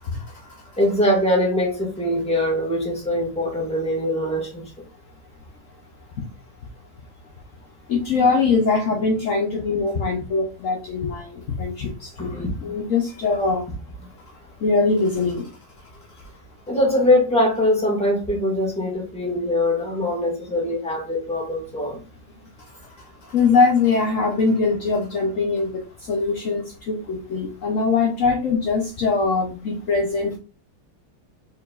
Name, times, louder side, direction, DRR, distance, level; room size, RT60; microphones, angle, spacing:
voice 1, 0.0-0.6 7.9-13.7 14.6-15.6 22.7-30.4, left 4 dB, 70° left, 0.7 m, -22 dB
voice 2, 0.8-4.6 12.2-12.5 16.7-22.0, left 1 dB, 5° left, 1.6 m, -22 dB
4.9 x 4.5 x 2.4 m
omnidirectional pair, 2.4 m